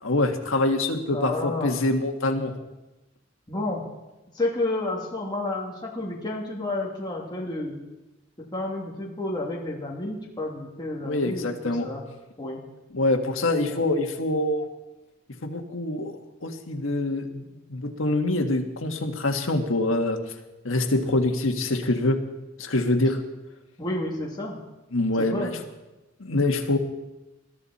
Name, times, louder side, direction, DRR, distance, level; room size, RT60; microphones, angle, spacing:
voice 1, 0.0-2.5 11.0-11.9 12.9-14.6 15.4-17.4 17.7-20.2 20.6-22.2 22.6-23.2 24.9-25.5 26.2-26.8, left 2 dB, 75° left, 4 dB, 1.7 m, -25 dB
voice 2, 1.1-1.8 3.5-3.8 4.3-7.8 8.5-12.0 12.4-12.6 13.5-13.8 23.8-24.6 25.2-25.5, left 2 dB, 20° left, -3 dB, 2.7 m, -30 dB
21.5 x 12.5 x 4.3 m, 1.1 s
head